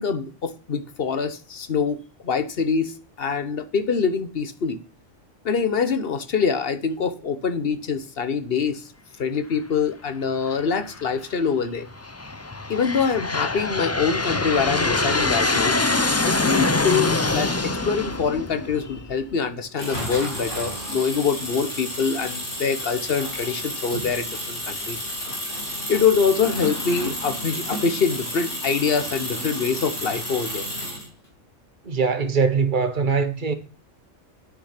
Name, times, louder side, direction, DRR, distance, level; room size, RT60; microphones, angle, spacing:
voice 1, 0.0-4.8 5.4-8.9 9.2-11.9 12.7-15.8 16.2-25.0 25.9-30.6, left 6 dB, 50° left, 1.1 m, -24 dB
Aircraft, 10.5-11.0 11.8-19.3, left 2 dB, 20° left, 0.4 m, -24 dB
sound 1, 19.8-31.1, equal, 70° left, 4.1 m, -31 dB
voice 2, 31.8-33.5, right 5 dB, 40° right, 1.2 m, -22 dB
9.6 x 6.6 x 5.8 m
omnidirectional pair, 1.3 m